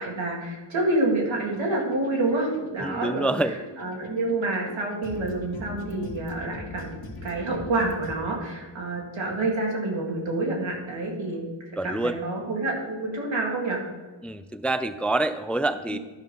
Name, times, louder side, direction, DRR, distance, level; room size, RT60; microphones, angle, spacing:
voice 1, 0.0-11.5 11.8-13.8 15.9-16.0, right 2 dB, 85° right, -2 dB, 2.3 m, -28 dB
sound 1, 1.4-8.2, left 2 dB, 55° left, 1.5 m, -42 dB
voice 2, 2.8-3.5 11.8-12.2 14.2-16.0, right 2 dB, 5° left, 11 dB, 0.4 m, -26 dB
11.5 x 5.3 x 5.3 m, 1.3 s
cardioid pair, 60°, 45 cm